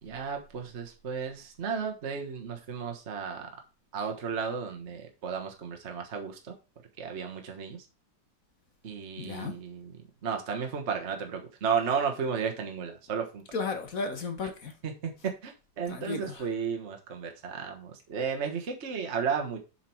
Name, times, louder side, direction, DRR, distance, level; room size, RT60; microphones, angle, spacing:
voice 1, 0.0-3.5 3.9-6.5 7.0-7.9 8.8-9.9 10.2-13.4 14.8-15.1 15.4-19.6, right 6 dB, 40° right, 1.4 m, -33 dB
voice 2, 9.2-9.5 13.5-14.7 15.9-16.5, left 4 dB, 50° left, 1.7 m, -34 dB
7.4 x 5.9 x 4.6 m
omnidirectional pair, 2.0 m